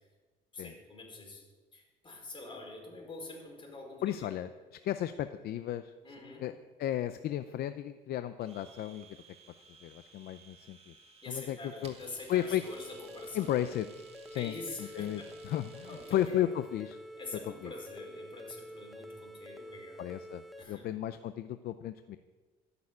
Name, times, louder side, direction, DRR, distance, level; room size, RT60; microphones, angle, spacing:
voice 1, 0.5-1.4 1.7-4.3 6.0-6.4 11.2-13.5 14.3-15.3 15.8-16.4 17.2-20.0 20.6-20.8, left 2 dB, 30° left, 0 dB, 4.9 m, -45 dB
voice 2, 4.0-4.5 4.8-5.9 6.4-6.5 6.8-9.1 9.8-10.9 11.3-11.9 12.3-12.6 13.3-14.0 14.3-14.5 14.8-17.0 17.6-17.7 20.0-20.4 20.7-22.2, left 12 dB, 65° left, 11 dB, 0.6 m, -34 dB
Domestic sounds home sounds, 8.4-16.4, right 5 dB, 35° right, 2.0 m, -58 dB
sound 1, 12.7-20.6, equal, ahead, 1.1 m, -48 dB
14.0 x 7.0 x 9.8 m, 1.3 s
cardioid pair, 110°, 17 cm